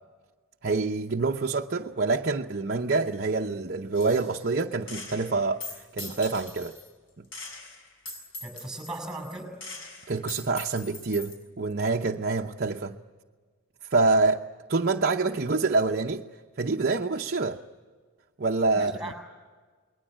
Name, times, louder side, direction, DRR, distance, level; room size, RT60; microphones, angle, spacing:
voice 1, 0.6-6.8 10.1-13.0 13.9-14.4 14.7-16.2 16.6-17.6 18.4-18.9, right 3 dB, 45° right, 0.8 m, -26 dB
Gunshot gunfire, 3.9-4.5 4.9-6.9 7.3-11.4, left 3 dB, 60° left, 6.3 m, -42 dB
voice 2, 8.4-9.5 18.7-19.2, right 1 dB, ahead, 6.5 m, -37 dB
28.5 x 21.0 x 8.9 m
head